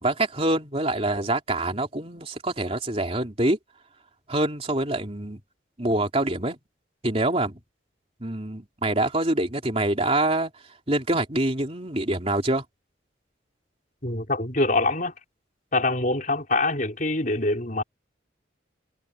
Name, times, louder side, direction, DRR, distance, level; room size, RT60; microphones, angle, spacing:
voice 1, 0.0-3.6 4.3-5.4 5.8-6.6 7.0-7.6 8.2-10.5 10.9-12.6, right 1 dB, 30° right, 3.3 m, -25 dB
voice 2, 14.0-15.1 15.7-17.8, left 2 dB, 40° left, 4.5 m, -24 dB
head